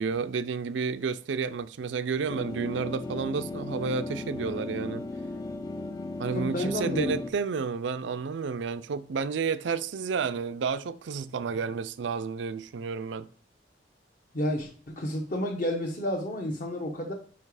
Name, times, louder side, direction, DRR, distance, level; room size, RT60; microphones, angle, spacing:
voice 1, 0.0-5.0 6.2-13.3, right 5 dB, 90° right, 0.4 m, -31 dB
sound 1, 2.3-7.3, left 2 dB, 20° left, 0.3 m, -36 dB
voice 2, 6.3-7.3 14.3-17.1, equal, 45° left, 0.9 m, -31 dB
5.5 x 4.8 x 4.8 m
head